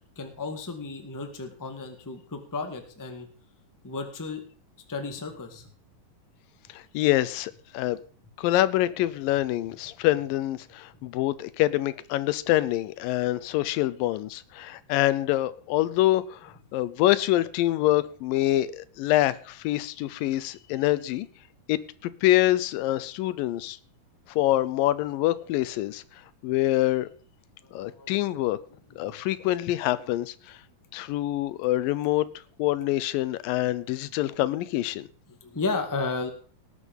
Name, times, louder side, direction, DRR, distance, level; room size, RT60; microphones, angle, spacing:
voice 1, 0.1-3.3 3.8-4.4 4.9-5.7 27.6-28.2 29.0-29.2 35.3-36.3, left 3 dB, 10° left, 5 dB, 0.9 m, -33 dB
voice 2, 6.7-8.0 8.4-21.3 21.7-23.8 24.3-26.0 26.4-27.1 27.7-28.6 29.0-30.6 30.9-32.3 32.6-35.1, left 15 dB, 90° left, 16 dB, 2.5 m, -25 dB
18.5 x 8.3 x 5.4 m, 0.43 s
omnidirectional pair, 3.9 m